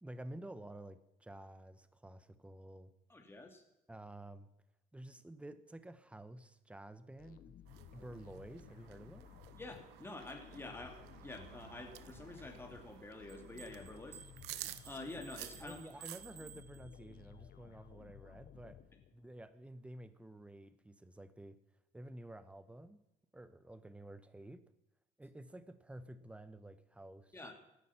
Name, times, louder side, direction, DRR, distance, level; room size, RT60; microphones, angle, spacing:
voice 1, 0.0-2.9 3.9-4.5 4.9-7.6 7.9-9.3 15.6-18.8 19.1-21.6 21.9-23.0 23.3-24.6 25.2-27.5, right 1 dB, 5° right, 13 dB, 1.0 m, -51 dB
voice 2, 3.1-3.6 9.6-14.2 14.8-16.0 27.3-27.5, left 2 dB, 15° left, 3 dB, 2.5 m, -48 dB
sound 1, 7.2-19.4, left 10 dB, 60° left, 1.1 m, -57 dB
sound 2, 7.7-16.6, right 15 dB, 90° right, 0.8 m, -53 dB
sound 3, 13.3-17.3, right 9 dB, 55° right, 1.3 m, -56 dB
17.0 x 11.0 x 5.9 m, 0.89 s
cardioid pair, 110°, 17 cm